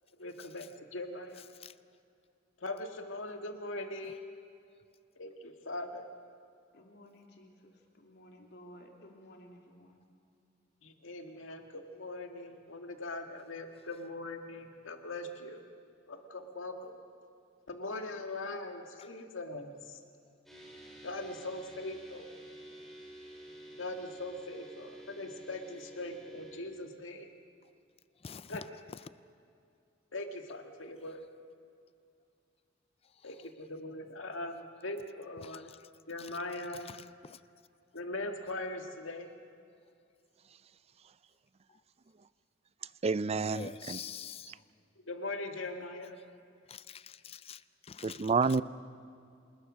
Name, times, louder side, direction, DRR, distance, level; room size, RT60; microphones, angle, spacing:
voice 1, 0.2-1.4 2.6-4.2 5.2-6.1 10.8-15.6 16.1-17.0 17.7-20.0 21.0-22.3 23.8-27.3 28.5-28.6 30.1-31.2 33.2-35.7 36.1-36.9 37.9-39.3 45.1-46.2, left 2 dB, 85° left, 2.0 m, -41 dB
voice 2, 6.7-10.0, equal, 60° left, 2.9 m, -55 dB
sound 1, 20.5-26.6, right 1 dB, ahead, 5.5 m, -50 dB
voice 3, 28.2-28.6 35.4-35.8 36.2-36.3 36.9-37.4 43.3-44.5 46.7-48.2, left 6 dB, 30° left, 0.4 m, -46 dB
voice 4, 43.0-44.0 44.5-44.6 48.0-48.6, right 4 dB, 30° right, 0.5 m, -29 dB
27.0 x 20.5 x 6.4 m
head